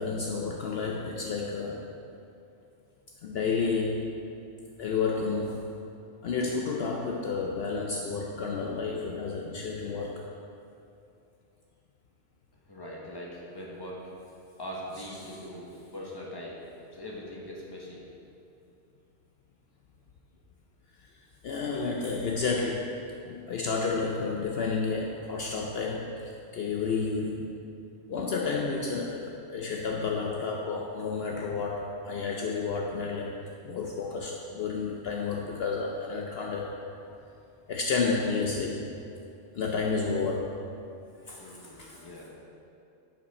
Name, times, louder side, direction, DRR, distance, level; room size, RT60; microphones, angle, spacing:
voice 1, 0.0-1.8 3.2-4.1 4.8-5.6 6.2-10.2 15.0-15.4 21.4-22.9 23.2-27.5 28.1-33.3 33.6-36.7 37.7-38.8 39.5-40.5 41.3-42.0, left 4 dB, 65° left, 0 dB, 0.8 m, -31 dB
voice 2, 12.7-14.0 14.6-16.6 16.9-18.0 41.4-42.3, equal, 20° left, -4 dB, 1.3 m, -41 dB
10.5 x 5.6 x 4.2 m, 2.7 s
omnidirectional pair, 1.2 m